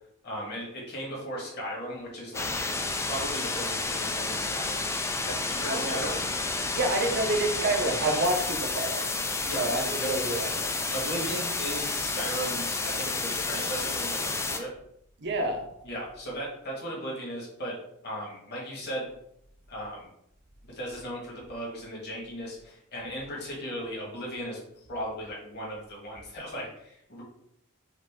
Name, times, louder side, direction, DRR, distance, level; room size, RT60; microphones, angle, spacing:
voice 1, 0.2-2.5 3.1-4.8 5.2-6.2 9.4-10.1 10.9-14.7 15.8-17.7 18.0-19.1 19.7-20.1 20.6-24.6 24.9-27.2, equal, 50° left, -3 dB, 1.6 m, -36 dB
sound 1, 2.3-14.6, left 3 dB, 15° left, 0.3 m, -30 dB
voice 2, 5.7-6.1 6.7-9.1 9.5-10.7 15.2-15.6, right 2 dB, 55° right, 4 dB, 0.7 m, -28 dB
4.9 x 2.6 x 3.6 m, 0.75 s
head